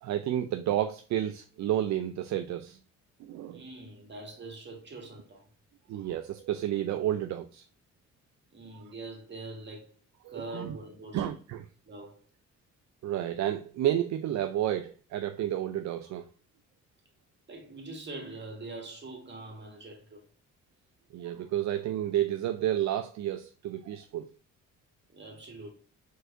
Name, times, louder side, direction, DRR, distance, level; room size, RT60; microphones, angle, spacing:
voice 1, 0.0-2.8 3.2-3.6 5.9-7.6 8.7-8.8 10.2-10.7 11.1-11.6 13.0-16.2 21.1-24.3, right 12 dB, 65° right, 0.5 m, -31 dB
voice 2, 3.5-5.5 8.5-9.9 10.3-11.4 11.9-12.2 17.5-20.2 25.1-25.7, right 2 dB, 35° right, 1.8 m, -43 dB
4.6 x 4.5 x 2.5 m
cardioid pair, 90°, 30 cm